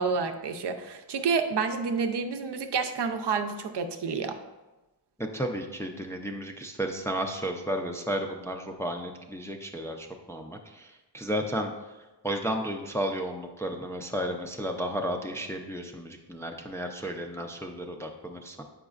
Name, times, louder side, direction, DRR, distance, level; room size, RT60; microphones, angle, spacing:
voice 1, 0.0-4.4, right 5 dB, 75° right, 6 dB, 0.6 m, -29 dB
voice 2, 5.2-11.7 12.2-18.6, equal, 5° left, 2 dB, 0.4 m, -33 dB
7.7 x 5.0 x 2.4 m, 1.1 s
wide cardioid pair, 115°, 41 cm